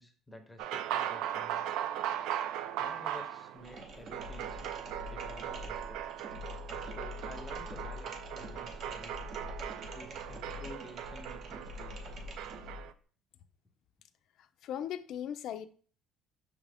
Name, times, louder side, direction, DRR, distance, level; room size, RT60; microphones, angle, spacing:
voice 1, 0.0-1.7 2.8-4.8 5.1-6.0 6.8-9.2 9.9-12.0, left 1 dB, 10° left, 0.6 m, -51 dB
sound 1, 0.6-12.9, right 10 dB, 75° right, 0.3 m, -39 dB
sound 2, 3.6-12.9, left 1 dB, 50° right, 0.7 m, -45 dB
voice 2, 14.6-15.7, left 10 dB, 60° left, 0.3 m, -37 dB
6.0 x 2.4 x 3.3 m
cardioid pair, 130°, 0 cm